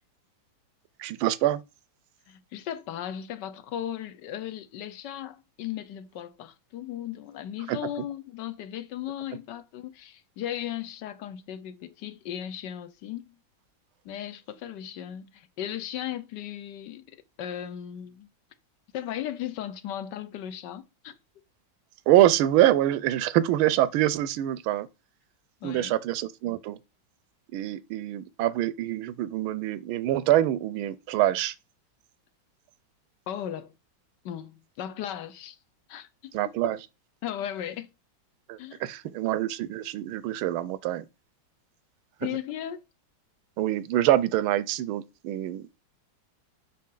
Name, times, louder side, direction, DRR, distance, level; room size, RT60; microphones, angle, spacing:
voice 1, 1.0-1.6 7.7-7.8 22.1-24.9 25.6-26.8 27.5-31.5 36.3-36.8 38.5-41.1 43.6-45.7, right 13 dB, 90° right, 1.5 m, -25 dB
voice 2, 2.3-13.4 14.0-18.3 18.9-21.2 25.6-26.0 33.3-33.7 34.2-35.6 35.9-36.6 37.2-37.9 38.6-38.8 42.2-42.8, left 11 dB, 65° left, 1.2 m, -36 dB
8.5 x 5.8 x 3.8 m
omnidirectional pair, 2.2 m